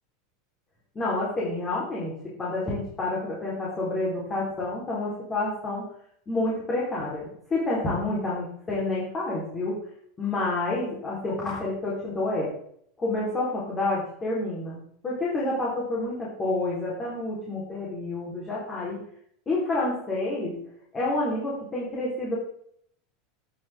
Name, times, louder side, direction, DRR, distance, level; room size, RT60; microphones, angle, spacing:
voice 1, 0.9-2.1 2.4-5.8 6.3-9.8 10.2-12.5 13.0-19.0 19.5-20.6 20.9-22.3, left 2 dB, 25° left, -6 dB, 4.6 m, -29 dB
17.5 x 7.4 x 3.9 m, 0.67 s
figure-of-eight pair, 80°, 0 cm